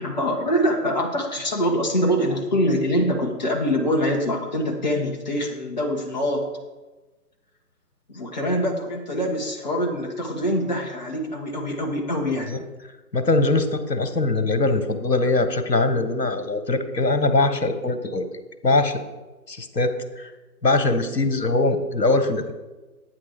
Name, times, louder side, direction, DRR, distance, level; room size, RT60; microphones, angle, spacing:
voice 1, 0.0-6.5 8.1-12.6, equal, 25° left, -1 dB, 1.6 m, -24 dB
voice 2, 13.1-18.2 18.6-19.0 19.5-19.9 20.2-20.3 20.6-22.5, left 2 dB, 80° left, 8 dB, 1.5 m, -22 dB
9.6 x 9.5 x 4.8 m, 1.2 s
figure-of-eight pair, 155°, 48 cm